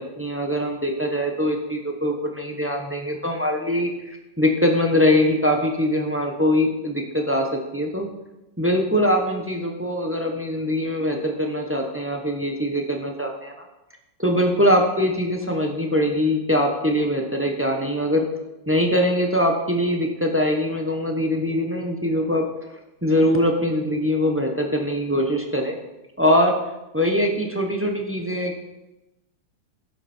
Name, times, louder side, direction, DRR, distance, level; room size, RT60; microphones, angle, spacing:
voice 1, 0.0-8.1 8.6-13.5 14.2-18.2 18.7-22.4 23.0-25.8 26.2-26.6 26.9-28.6, equal, 10° right, 2 dB, 0.8 m, -22 dB
11.5 x 8.1 x 4.5 m, 0.96 s
omnidirectional pair, 2.0 m